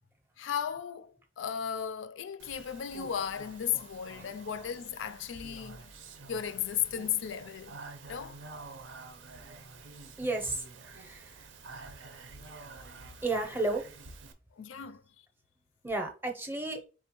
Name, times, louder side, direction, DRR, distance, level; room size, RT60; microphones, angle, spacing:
voice 1, 0.4-5.9 6.3-7.8 8.1-8.4 14.5-15.0, left 9 dB, 90° left, 0.4 m, -35 dB
Speech, 2.4-14.3, right 3 dB, 90° right, 0.6 m, -49 dB
voice 2, 10.2-10.6 10.9-11.5 13.2-13.8 15.8-16.8, right 2 dB, 10° right, 0.6 m, -33 dB
4.2 x 3.6 x 2.9 m
head